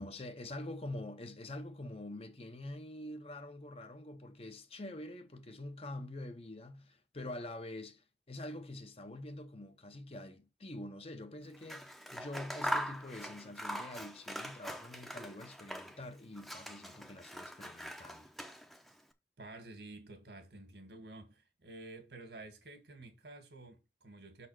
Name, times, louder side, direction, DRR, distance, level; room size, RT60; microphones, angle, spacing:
voice 1, 0.0-18.3, left 1 dB, 35° left, 0.8 m, -46 dB
Scissors, 11.5-16.1 16.3-18.9, equal, ahead, 0.7 m, -42 dB
voice 2, 19.4-24.5, right 2 dB, 70° right, 1.9 m, -51 dB
6.5 x 4.2 x 6.3 m
head